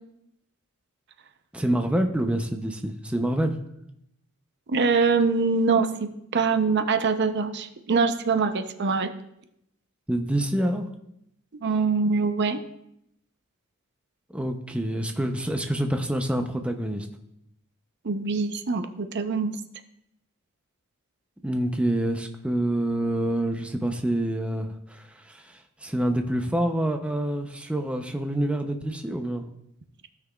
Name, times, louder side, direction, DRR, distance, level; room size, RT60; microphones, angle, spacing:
voice 1, 1.5-3.6 10.1-10.9 14.3-17.1 21.4-29.4, right 1 dB, 5° right, 4 dB, 0.5 m, -27 dB
voice 2, 4.7-9.1 11.5-12.6 18.0-19.5, right 4 dB, 55° right, 8 dB, 0.6 m, -24 dB
15.5 x 5.9 x 2.3 m, 0.78 s
head